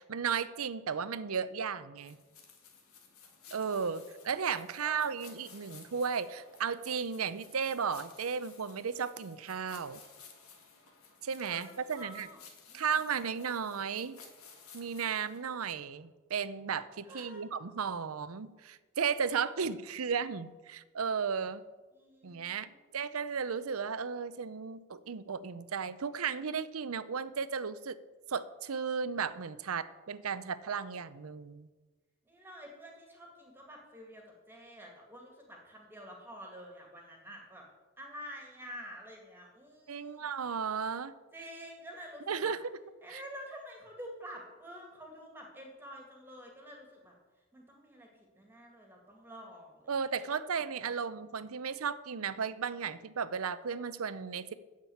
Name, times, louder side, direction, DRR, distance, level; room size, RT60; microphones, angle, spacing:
voice 1, 0.0-2.2 3.5-10.0 11.2-12.3 12.7-14.2 14.7-21.6 22.2-28.0 28.3-31.7 39.9-41.1 42.3-42.8 43.1-43.2 49.9-54.5, right 6 dB, 90° right, 15 dB, 0.6 m, -35 dB
sound 1, 2.0-15.4, left 6 dB, 85° left, 2.1 m, -56 dB
voice 2, 3.4-4.3 4.8-5.2 11.5-12.4 12.7-12.8 17.1-17.4 21.9-22.9 32.3-37.6 38.0-40.2 41.3-42.5 43.0-47.1 47.5-48.1 48.3-49.9, equal, 10° right, 0 dB, 2.1 m, -49 dB
9.8 x 7.5 x 8.5 m, 1.3 s
head